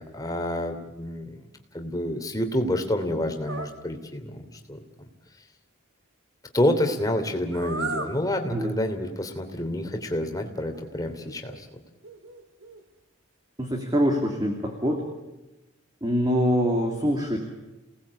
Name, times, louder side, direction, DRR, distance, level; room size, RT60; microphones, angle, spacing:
voice 1, 0.0-1.4 1.7-4.8 6.5-11.7, left 1 dB, 20° left, 5 dB, 3.0 m, -28 dB
sound 1, 3.5-3.8 7.5-8.2 9.5-9.6 10.7-11.6 12.0-12.8, right 3 dB, 80° right, 2.4 m, -35 dB
voice 2, 13.6-15.0 16.0-17.4, equal, 20° right, 2 dB, 2.9 m, -24 dB
28.5 x 19.0 x 8.5 m, 1.1 s
head